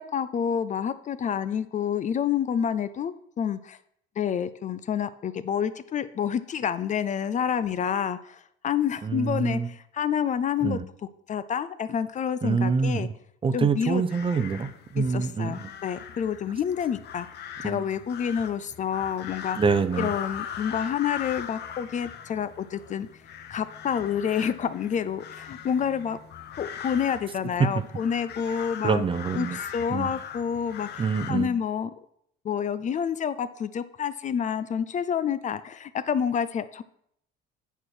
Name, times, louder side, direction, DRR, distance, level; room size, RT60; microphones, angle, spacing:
voice 1, 0.0-3.8 4.2-10.8 11.3-13.1 13.5-14.0 15.0-17.3 17.6-19.6 20.0-23.1 23.5-26.2 26.6-29.0 29.4-29.5 29.7-31.9 32.4-36.8, left 8 dB, 40° left, 14 dB, 0.5 m, -28 dB
voice 2, 9.0-9.7 10.6-10.8 12.4-13.1 13.4-15.7 17.6-17.8 19.5-20.1 27.6-27.8 28.5-29.6 29.9-30.1 31.0-31.5, right 5 dB, 25° right, 12 dB, 0.6 m, -26 dB
sound 1, 13.9-31.3, left 9 dB, 60° left, 0.8 m, -40 dB
8.9 x 4.8 x 6.2 m, 0.70 s
cardioid pair, 100°, 20 cm